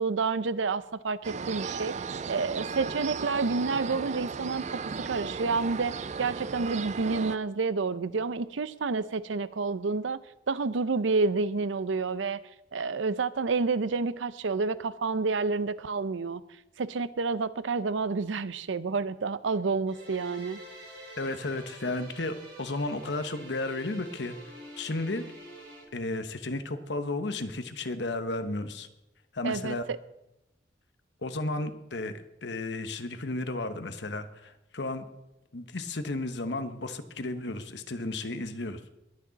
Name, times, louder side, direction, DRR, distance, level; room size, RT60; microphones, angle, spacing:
voice 1, 0.0-1.9 2.3-5.9 6.2-12.4 12.7-16.4 16.8-20.6 29.4-30.0, right 4 dB, 85° right, 15 dB, 0.6 m, -29 dB
sound 1, 1.2-7.4, right 5 dB, 40° right, 0.4 m, -36 dB
sound 2, 19.9-25.8, right 1 dB, 65° right, 4.6 m, -47 dB
voice 2, 21.2-24.4 24.8-25.2 25.9-28.9 29.3-29.8 31.2-35.0 35.5-38.8, left 2 dB, 65° left, 9 dB, 1.1 m, -33 dB
21.0 x 8.7 x 4.1 m, 0.91 s
head